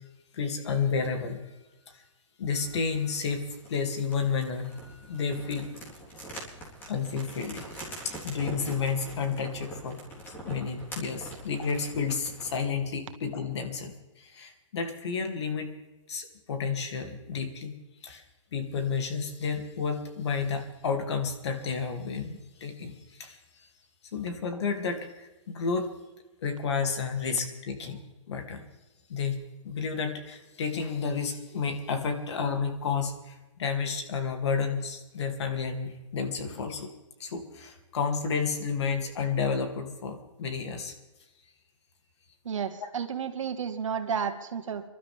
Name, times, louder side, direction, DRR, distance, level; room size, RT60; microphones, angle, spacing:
voice 1, 0.3-1.4 1.9-2.0 2.4-3.4 3.7-5.7 6.9-10.0 10.4-15.7 16.1-17.7 18.0-18.2 18.5-23.4 24.1-25.9 26.4-28.0 28.3-28.7 29.1-36.9 37.2-40.9 42.8-42.9, left 5 dB, 55° left, 5 dB, 2.7 m, -31 dB
sound 1, 2.6-12.6, right 1 dB, 10° left, 3.7 m, -44 dB
voice 2, 42.5-44.8, right 7 dB, 70° right, 7 dB, 1.9 m, -32 dB
26.0 x 12.5 x 3.6 m, 1.1 s
hypercardioid pair, 160°, 17 cm